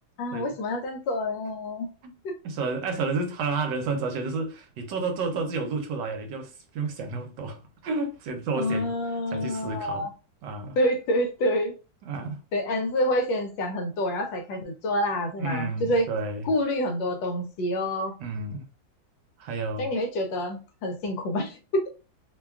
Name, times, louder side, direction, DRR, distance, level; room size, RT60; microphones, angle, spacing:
voice 1, 0.2-1.9 2.2-2.3 8.5-10.1 10.8-11.7 12.5-16.1 16.4-18.1 19.8-21.8, left 1 dB, 80° left, 1.3 m, -27 dB
voice 2, 2.4-8.9 9.3-10.1 10.4-10.8 12.0-12.4 14.5-14.6 15.4-16.5 18.2-18.7 19.4-19.9, right 4 dB, 75° right, 1.2 m, -31 dB
3.2 x 2.2 x 2.3 m
omnidirectional pair, 2.1 m